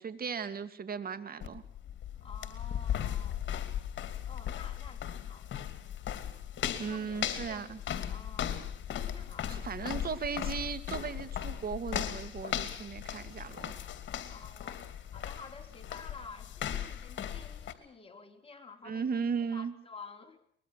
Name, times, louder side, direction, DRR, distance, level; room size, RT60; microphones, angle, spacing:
voice 1, 0.0-1.6 6.8-7.8 9.5-13.7 18.8-19.7, right 6 dB, 50° right, 12 dB, 2.2 m, -36 dB
sound 1, 1.4-17.7, left 10 dB, 65° left, 2.8 m, -37 dB
voice 2, 2.2-3.4 4.2-5.6 6.7-8.5 9.1-9.9 14.3-14.9 15.1-20.4, left 4 dB, 30° left, 4 dB, 4.4 m, -51 dB
23.5 x 21.0 x 6.4 m, 0.64 s
cardioid pair, 90°, 20 cm